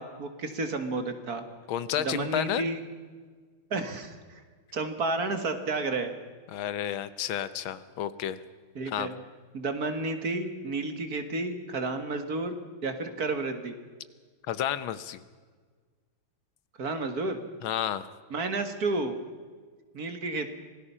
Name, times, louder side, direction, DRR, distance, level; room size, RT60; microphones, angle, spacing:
voice 1, 0.0-1.4 2.0-2.8 3.7-4.4 4.7-6.1 8.8-9.1 9.5-12.6 12.8-13.8 16.8-17.4 18.3-19.2 19.9-20.5, right 3 dB, 50° right, 8 dB, 2.0 m, -31 dB
voice 2, 1.7-2.6 6.5-8.4 8.9-9.1 14.5-15.2 17.6-18.1, left 10 dB, 80° left, 15 dB, 1.7 m, -31 dB
26.0 x 18.5 x 5.6 m, 1.5 s
omnidirectional pair, 2.2 m